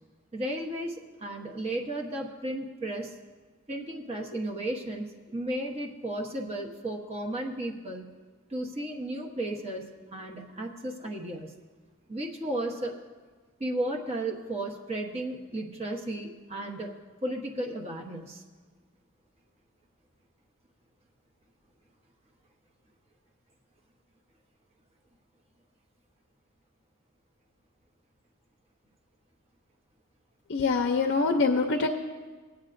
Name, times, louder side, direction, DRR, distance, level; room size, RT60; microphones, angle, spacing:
voice 1, 0.3-3.1 3.7-8.1 8.5-11.5 12.1-13.0 13.6-16.9 17.2-18.4, right 1 dB, 30° right, 0 dB, 1.0 m, -34 dB
voice 2, 30.5-31.9, left 4 dB, 55° left, 5 dB, 0.5 m, -24 dB
19.5 x 8.8 x 2.5 m, 1.4 s
head